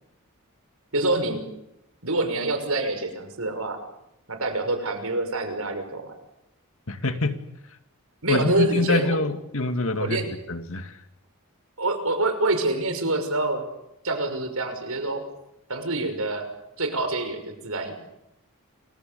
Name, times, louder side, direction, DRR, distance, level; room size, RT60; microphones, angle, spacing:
voice 1, 0.9-1.4 2.0-3.8 4.3-6.1 8.2-9.2 10.0-10.2 11.8-13.6 14.0-15.2 15.7-16.5 16.8-17.9, right 2 dB, 70° right, 7 dB, 6.0 m, -26 dB
voice 2, 6.9-7.4 8.3-11.0, left 2 dB, 65° left, 7 dB, 2.3 m, -25 dB
29.0 x 24.0 x 7.1 m, 0.84 s
head